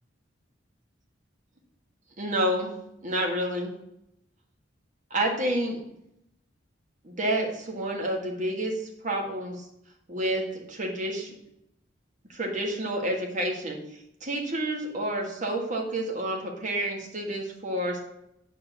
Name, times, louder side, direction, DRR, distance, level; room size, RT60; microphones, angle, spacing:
voice 1, 2.2-2.7 3.0-3.7 5.1-5.8 7.0-9.6 10.1-11.3 12.3-18.0, right 1 dB, 45° right, 1 dB, 1.9 m, -29 dB
8.4 x 4.9 x 6.8 m, 0.80 s
head